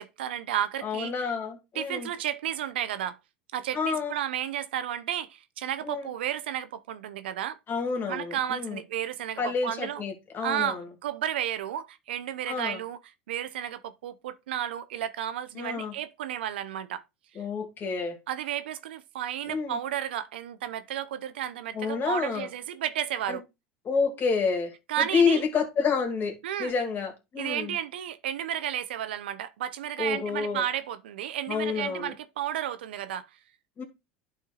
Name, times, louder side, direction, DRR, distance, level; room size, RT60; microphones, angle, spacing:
voice 1, 0.0-1.3 1.7-3.2 3.5-7.6 8.1-10.0 10.4-13.0 13.3-17.0 18.3-23.4 24.9-25.4 26.4-26.7 27.4-33.2, right 11 dB, 80° right, 0.6 m, -32 dB
voice 2, 0.8-2.1 3.7-4.1 5.8-6.1 7.7-8.8 9.4-10.9 12.5-12.8 15.6-15.9 17.4-18.2 19.5-19.8 21.7-22.5 23.3-23.4 23.9-24.7 25.1-27.8 30.0-30.6 31.5-32.1 33.8-33.9, left 5 dB, 40° left, 2.3 m, -29 dB
11.5 x 4.4 x 2.4 m
hypercardioid pair, 90°, 6 cm